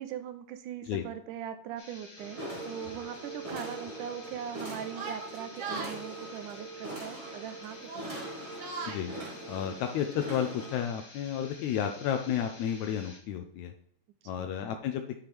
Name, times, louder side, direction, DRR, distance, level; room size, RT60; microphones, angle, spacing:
voice 1, 0.0-8.3 14.4-14.5, right 9 dB, 75° right, 10 dB, 2.1 m, -41 dB
sound 1, 1.8-13.2, left 2 dB, 30° left, 2.5 m, -51 dB
sound 2, 2.2-10.8, right 2 dB, 35° right, 0.5 m, -42 dB
Yell, 4.9-6.0 7.0-7.4 7.8-9.0, right 4 dB, 60° right, 2.4 m, -40 dB
voice 2, 9.5-13.7 14.2-15.1, left 9 dB, 80° left, 5 dB, 1.6 m, -32 dB
9.6 x 5.8 x 3.5 m, 0.63 s
omnidirectional pair, 3.9 m